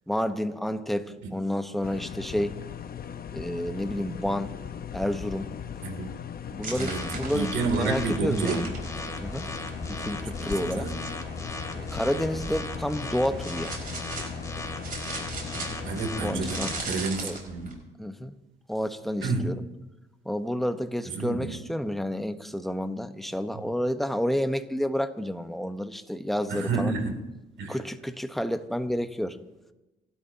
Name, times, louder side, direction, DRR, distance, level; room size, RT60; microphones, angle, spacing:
voice 1, 0.1-2.6 3.3-4.5 4.9-5.5 6.5-8.7 9.2-9.5 10.0-10.9 11.7-13.8 16.1-16.7 17.2-17.4 18.0-18.3 18.7-19.6 20.2-27.0 27.7-29.4, equal, ahead, 8 dB, 1.0 m, -30 dB
sound 1, 1.8-17.1, left 8 dB, 50° left, 0.9 m, -38 dB
sound 2, 6.6-10.1 11.7-17.7, right 3 dB, 45° right, 5.3 m, -40 dB
sound 3, 6.8-16.8, left 1 dB, 15° left, 2.5 m, -37 dB
voice 2, 7.3-8.6 10.4-10.9 15.5-17.6 19.2-19.4 21.1-21.6 26.5-27.2 27.6-27.8, right 4 dB, 75° right, 3 dB, 2.9 m, -29 dB
29.0 x 12.5 x 2.9 m, 1.0 s
cardioid pair, 90°, 20 cm